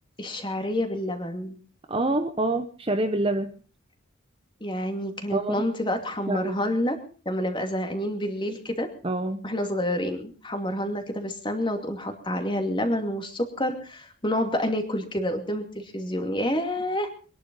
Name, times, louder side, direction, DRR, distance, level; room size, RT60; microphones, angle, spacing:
voice 1, 0.2-1.6 4.6-7.0 7.2-8.9 9.4-17.1, left 1 dB, 25° left, 6 dB, 2.6 m, -28 dB
voice 2, 1.9-3.5 5.3-5.6 6.3-6.6 9.0-9.4, right 2 dB, 25° right, 8 dB, 1.0 m, -26 dB
23.0 x 11.0 x 5.4 m, 0.39 s
head